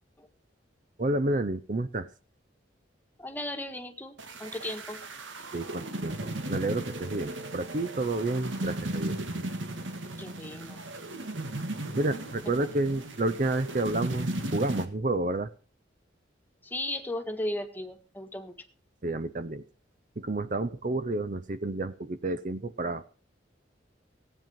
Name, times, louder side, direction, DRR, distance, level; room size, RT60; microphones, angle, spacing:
voice 1, 1.0-2.1 5.5-9.2 11.9-15.5 19.0-19.6 20.2-23.0, right 2 dB, 45° right, 14 dB, 0.6 m, -30 dB
voice 2, 3.2-5.0 10.2-10.8 12.6-12.7 16.6-18.5, left 1 dB, 10° left, 5 dB, 1.5 m, -36 dB
sound 1, 4.2-14.8, right 1 dB, 90° right, 1.9 m, -36 dB
16.5 x 9.1 x 5.7 m, 0.38 s
head